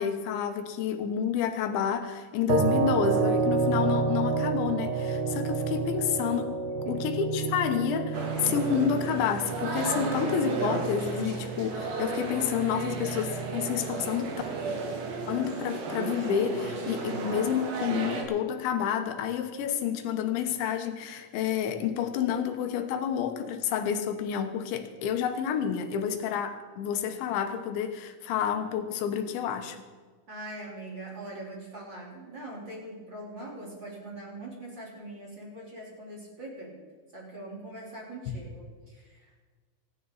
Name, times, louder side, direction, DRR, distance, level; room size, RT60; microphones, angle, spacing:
voice 1, 0.0-6.5 6.9-14.4 15.3-29.8, left 8 dB, 75° left, 7 dB, 3.4 m, -29 dB
sound 1, 2.5-15.5, right 5 dB, 80° right, 1.9 m, -31 dB
sound 2, 8.1-18.2, right 3 dB, 65° right, 4.2 m, -34 dB
voice 2, 30.3-36.8 37.1-39.4, right 2 dB, 25° right, -4 dB, 4.1 m, -42 dB
25.5 x 11.0 x 4.1 m, 1.5 s
omnidirectional pair, 5.4 m